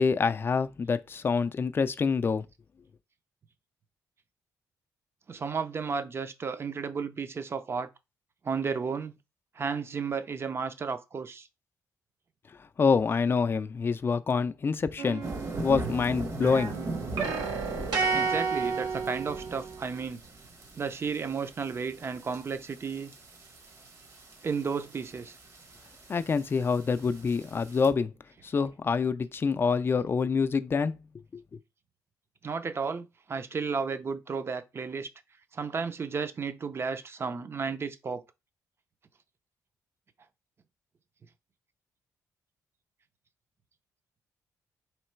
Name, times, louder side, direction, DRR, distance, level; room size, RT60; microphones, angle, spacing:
voice 1, 0.0-2.4 12.8-15.2 15.6-17.0 26.1-28.1 28.4-30.9 31.3-31.4, left 5 dB, 35° left, 0.4 m, -26 dB
voice 2, 5.3-7.9 8.4-9.2 9.6-11.5 18.1-20.2 20.8-23.1 24.4-25.4 32.4-35.1 35.5-38.2, right 5 dB, 40° right, 0.6 m, -33 dB
sound 1, 15.0-16.0 16.4-19.9, right 5 dB, 85° right, 0.9 m, -32 dB
sound 2, 15.2-27.9, right 2 dB, 55° right, 1.1 m, -41 dB
3.1 x 2.9 x 4.5 m
cardioid pair, 90°, 7 cm